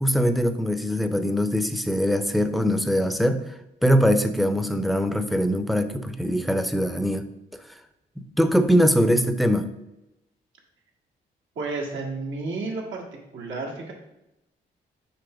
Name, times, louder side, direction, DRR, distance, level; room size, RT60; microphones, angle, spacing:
voice 1, 0.0-3.5 3.8-7.3 7.5-7.6 8.2-9.7, equal, ahead, 10 dB, 0.7 m, -22 dB
voice 2, 11.6-13.0 13.3-13.9, right 3 dB, 75° right, -2 dB, 1.9 m, -31 dB
6.8 x 3.3 x 5.1 m, 0.90 s
supercardioid pair, 60°, 20 cm